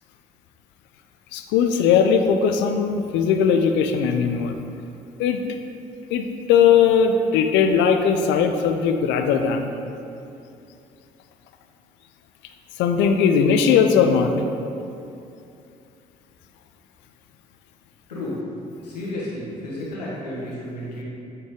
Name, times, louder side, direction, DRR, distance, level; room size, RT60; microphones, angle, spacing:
voice 1, 1.3-4.6 5.2-5.4 6.1-9.7 12.8-14.3, left 7 dB, 65° left, 6 dB, 0.5 m, -19 dB
voice 2, 18.1-18.4 18.8-21.0, left 1 dB, 85° left, -6 dB, 0.9 m, -32 dB
8.2 x 3.3 x 3.6 m, 2.6 s
figure-of-eight pair, 45°, 20 cm